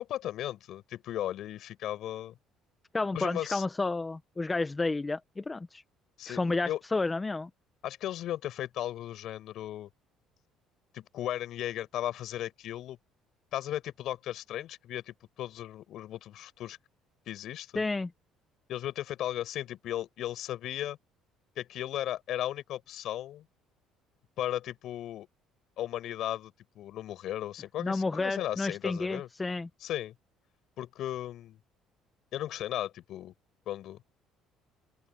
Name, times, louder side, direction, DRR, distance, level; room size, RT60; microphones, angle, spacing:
voice 1, 0.1-2.3 3.1-3.6 6.2-6.8 7.8-9.9 10.9-13.0 13.5-16.8 17.3-17.8 18.7-21.0 21.6-23.4 24.4-25.3 25.8-29.3 29.8-30.1 30.8-31.6 32.3-33.3 33.7-34.0, left 12 dB, 60° left, 7.2 m, -36 dB
voice 2, 2.9-5.8 6.3-7.5 17.7-18.1 27.8-29.7, left 3 dB, 15° left, 0.8 m, -31 dB
open air
cardioid pair, 130°, 0 cm